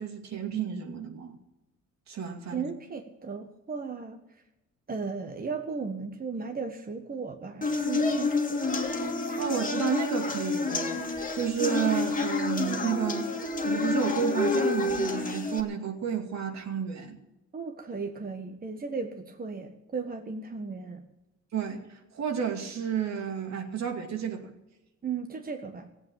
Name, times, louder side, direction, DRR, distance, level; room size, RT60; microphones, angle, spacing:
voice 1, 0.0-1.3 2.1-2.6 9.2-13.3 13.6-17.2 21.5-21.8 22.1-24.5, right 7 dB, 60° right, 4 dB, 2.5 m, -31 dB
voice 2, 2.5-4.2 4.9-8.6 17.5-21.0 25.0-25.9, right 5 dB, 30° right, 4 dB, 1.4 m, -36 dB
sound 1, 7.6-15.6, left 3 dB, 25° left, 2.1 m, -29 dB
16.5 x 8.3 x 8.8 m, 0.97 s
cardioid pair, 90°, 30 cm